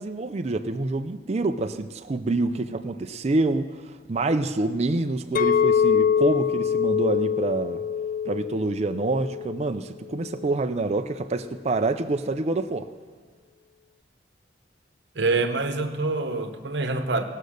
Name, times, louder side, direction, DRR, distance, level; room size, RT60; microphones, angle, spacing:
voice 1, 0.0-7.8 8.2-12.9, right 2 dB, 35° right, 7 dB, 0.4 m, -26 dB
Chink clink, 5.3-9.7 10.2-10.5, left 7 dB, 45° left, 0.3 m, -24 dB
voice 2, 15.1-17.2, right 3 dB, 65° right, 8 dB, 1.0 m, -25 dB
18.0 x 6.5 x 6.5 m, 1.5 s
head